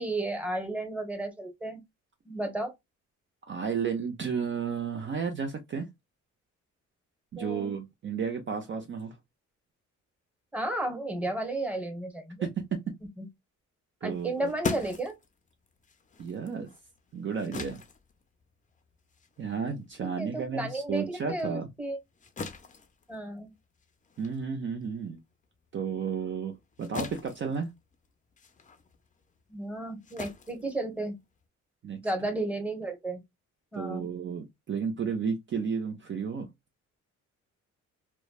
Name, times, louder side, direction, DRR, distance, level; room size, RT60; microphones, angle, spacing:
voice 1, 0.0-1.8 2.2-2.7 7.4-7.8 10.5-12.5 13.2-13.3 14.0-15.2 20.0-22.0 23.1-23.5 29.5-31.1 32.0-33.2 33.7-34.1, right 2 dB, 5° right, 1.1 m, -33 dB
voice 2, 3.5-5.9 7.3-9.2 12.4-12.8 14.0-14.5 16.2-16.7 17.1-17.8 19.4-21.7 24.2-25.2 25.7-26.5 26.8-27.7 31.8-32.0 33.7-36.5, right 6 dB, 40° right, 0.6 m, -32 dB
sound 1, 14.1-20.9 21.3-31.5, left 4 dB, 25° left, 0.5 m, -42 dB
3.0 x 2.2 x 2.2 m
cardioid pair, 90°, 30 cm